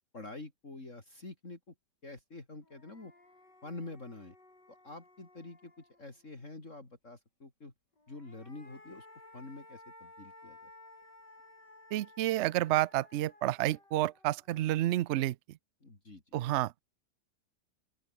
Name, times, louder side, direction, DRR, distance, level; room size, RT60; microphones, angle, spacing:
voice 1, 0.1-1.7 2.0-3.1 3.6-4.3 4.7-7.7 8.1-9.1 9.3-10.7 15.8-16.2, left 2 dB, 45° left, 4.5 m, -47 dB
sound 1, 2.2-2.3 2.6-6.3 7.9-15.2, left 2 dB, 85° left, 7.8 m, -57 dB
voice 2, 11.9-15.4 16.3-16.8, right 15 dB, 85° right, 0.6 m, -30 dB
open air
omnidirectional pair, 1.8 m